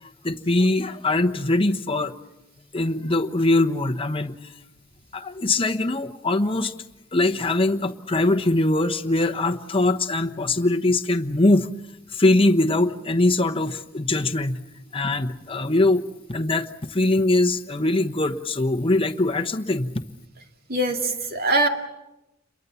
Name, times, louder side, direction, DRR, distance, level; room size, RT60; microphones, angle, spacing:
voice 1, 0.2-2.1 2.7-4.4 5.1-6.7 7.1-11.7 12.1-14.6 14.9-16.0 16.3-19.9, left 2 dB, 30° left, 7 dB, 1.1 m, -22 dB
voice 2, 20.7-21.7, right 2 dB, 50° right, 4 dB, 2.4 m, -22 dB
29.5 x 22.5 x 7.0 m, 0.92 s
head